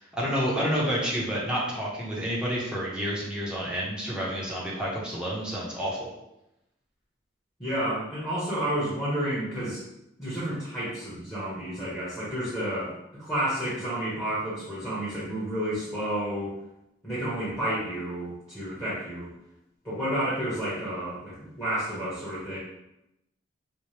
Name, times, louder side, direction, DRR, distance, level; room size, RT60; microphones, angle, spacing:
voice 1, 0.1-6.1, equal, 5° right, -6 dB, 0.8 m, -29 dB
voice 2, 7.6-9.9 10.2-16.5 17.0-19.3 19.8-22.6, right 1 dB, 15° left, -10 dB, 1.0 m, -31 dB
4.4 x 2.2 x 3.2 m, 0.87 s
head